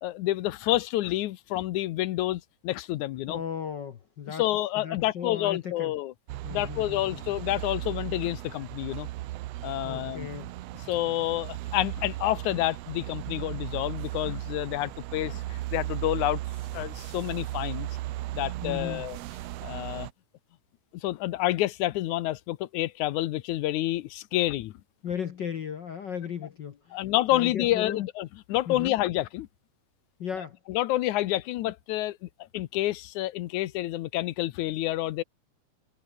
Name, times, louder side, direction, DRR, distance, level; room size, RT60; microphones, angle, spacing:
voice 1, 0.0-3.4 4.3-6.1 6.5-9.1 9.6-10.3 10.9-16.4 16.7-17.9 18.3-19.2 19.6-20.1 20.9-24.7 26.9-29.5 30.7-35.2, left 15 dB, 80° left, 2.2 m, -29 dB
voice 2, 3.3-4.4 4.8-5.9 6.4-7.2 9.8-10.5 18.6-19.0 25.0-28.0 28.7-28.9 30.2-30.6, left 8 dB, 60° left, 1.1 m, -36 dB
sound 1, 6.3-20.1, right 16 dB, 80° right, 1.5 m, -36 dB
omnidirectional pair, 3.5 m